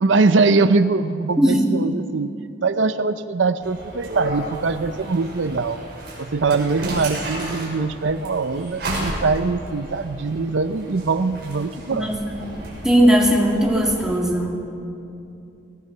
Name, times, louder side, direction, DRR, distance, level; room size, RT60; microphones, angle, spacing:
voice 1, 0.0-2.3 2.6-5.8 6.2-12.1, right 4 dB, 75° right, 11 dB, 0.6 m, -22 dB
voice 2, 1.4-1.8 11.9-12.4 12.8-14.5, equal, 5° right, -2 dB, 2.6 m, -18 dB
sound 1, 3.6-14.2, right 1 dB, 60° right, 6.0 m, -33 dB
22.0 x 18.0 x 6.7 m, 2.7 s
head